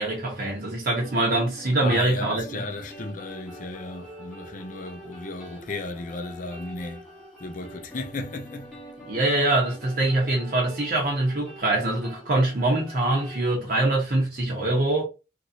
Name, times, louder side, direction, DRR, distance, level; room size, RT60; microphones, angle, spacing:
voice 1, 0.0-2.6 9.1-15.0, right 2 dB, 45° right, 0.9 m, -24 dB
sound 1, 1.0-13.5, equal, 5° left, 0.9 m, -45 dB
voice 2, 1.8-7.1 7.4-8.7, left 2 dB, 40° left, 0.5 m, -35 dB
3.0 x 2.5 x 2.7 m
head